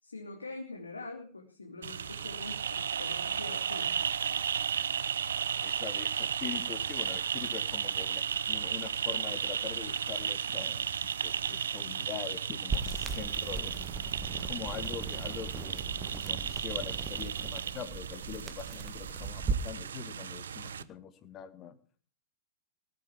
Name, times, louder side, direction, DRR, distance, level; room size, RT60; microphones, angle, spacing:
voice 1, 0.0-4.0, left 3 dB, 75° left, 1 dB, 3.0 m, -44 dB
sound 1, 1.8-20.8, right 7 dB, 65° right, 0.9 m, -34 dB
voice 2, 5.6-10.9 11.2-13.8 14.4-21.7, left 9 dB, 25° left, 12 dB, 2.0 m, -43 dB
sound 2, 12.7-19.7, right 4 dB, 20° right, 1.7 m, -38 dB
19.0 x 8.6 x 7.4 m, 0.42 s
figure-of-eight pair, 105°, 0 cm